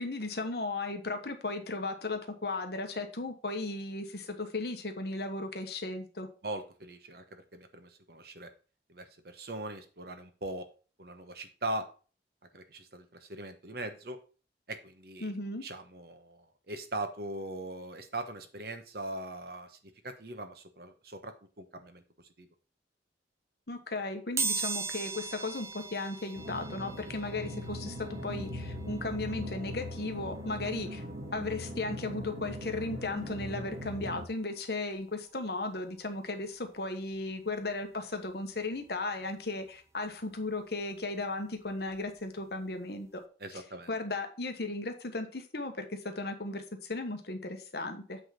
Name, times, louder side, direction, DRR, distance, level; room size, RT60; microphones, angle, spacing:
voice 1, 0.0-6.3 15.2-15.6 23.7-31.0 31.3-43.2 43.5-43.6 43.9-48.2, left 2 dB, 60° left, 5 dB, 1.2 m, -36 dB
voice 2, 6.4-8.5 8.9-10.7 11.0-11.9 12.5-14.2 14.7-15.3 15.6-19.8 20.0-22.0 22.4-22.5 43.4-43.9, right 2 dB, 55° right, 7 dB, 1.1 m, -40 dB
sound 1, 24.4-35.0 35.5-35.6 36.7-36.9 37.1-39.2 39.6-42.2 42.6-42.7 43.1-43.2, right 4 dB, 15° right, 0.4 m, -41 dB
sound 2, 26.3-34.3, equal, 80° right, 1.7 m, -40 dB
8.0 x 3.7 x 5.7 m, 0.37 s
head